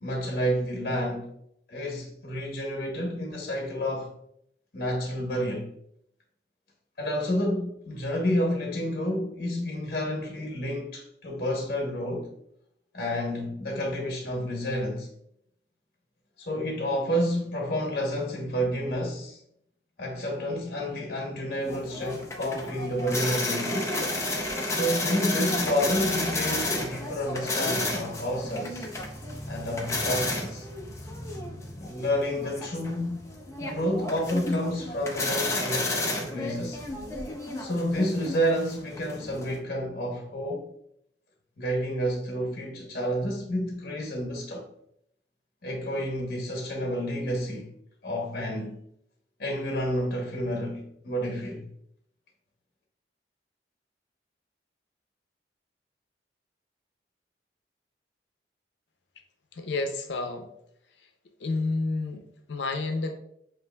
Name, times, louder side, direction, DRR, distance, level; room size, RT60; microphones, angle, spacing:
voice 1, 0.0-1.3 1.7-4.1 4.7-5.7 7.0-12.3 12.9-15.1 16.4-19.4 20.0-23.9 24.7-28.9 29.5-30.7 31.8-33.2 33.6-36.8 37.6-40.7 41.6-44.7 45.6-47.7 48.0-48.8 49.4-51.7, equal, 55° left, 0.9 m, -30 dB
sound 1, 21.7-39.6, left 2 dB, 15° left, 0.6 m, -32 dB
voice 2, 59.6-60.5 61.4-62.2 62.5-63.2, left 3 dB, 90° left, 0.6 m, -29 dB
7.7 x 2.6 x 2.3 m
head